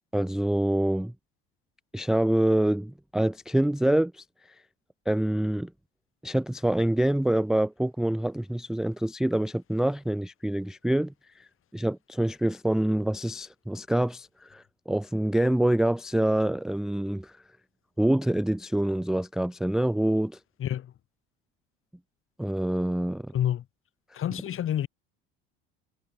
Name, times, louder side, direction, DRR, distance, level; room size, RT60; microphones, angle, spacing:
voice 1, 0.1-1.1 1.9-4.2 5.1-5.7 6.2-11.5 11.7-17.4 18.0-20.4 22.4-23.3, right 1 dB, ahead, 0.4 m, -26 dB
voice 2, 20.6-20.9 23.3-23.6 24.1-24.9, left 11 dB, 45° left, 3.7 m, -28 dB
hypercardioid pair, 80°, 29 cm